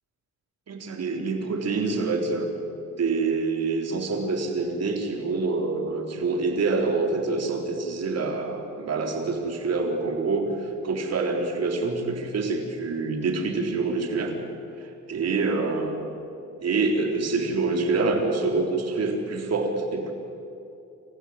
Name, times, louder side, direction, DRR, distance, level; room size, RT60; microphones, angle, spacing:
voice 1, 0.7-2.6 3.0-14.3 14.8-16.0 16.6-20.1, right 3 dB, 55° right, 3 dB, 4.0 m, -26 dB
27.0 x 15.0 x 9.0 m, 2.7 s
cardioid pair, 90°, 30 cm